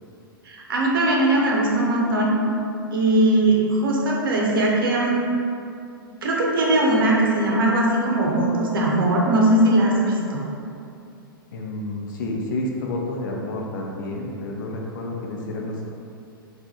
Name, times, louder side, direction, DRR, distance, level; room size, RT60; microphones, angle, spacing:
voice 1, 0.5-2.4 2.9-5.2 6.2-10.4, right 1 dB, 70° right, -3 dB, 0.7 m, -20 dB
voice 2, 11.5-15.8, left 2 dB, 55° left, -1 dB, 0.6 m, -30 dB
3.6 x 2.4 x 2.8 m, 2.6 s
figure-of-eight pair, 105°, 12 cm